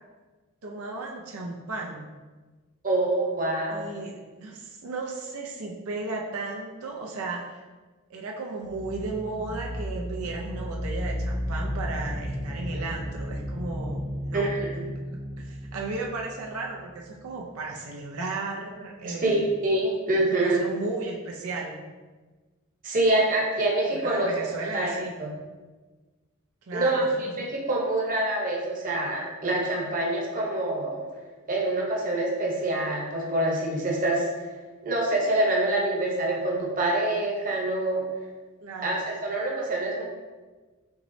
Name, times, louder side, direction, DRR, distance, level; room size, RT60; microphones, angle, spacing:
voice 1, 0.6-2.1 3.7-7.6 8.1-14.5 15.1-19.4 20.3-21.8 23.9-25.1 26.7-27.1 38.6-39.0, right 3 dB, 85° right, 0 dB, 0.6 m, -35 dB
voice 2, 2.8-3.9 14.3-14.8 19.0-20.6 22.8-24.3 24.7-24.9 25.2-25.3 26.7-31.1 31.5-34.3 34.8-38.0 38.8-40.0, right 2 dB, 40° right, -2 dB, 0.9 m, -26 dB
sound 1, 8.6-17.3, equal, ahead, 0.4 m, -34 dB
6.0 x 3.1 x 2.7 m, 1.3 s
head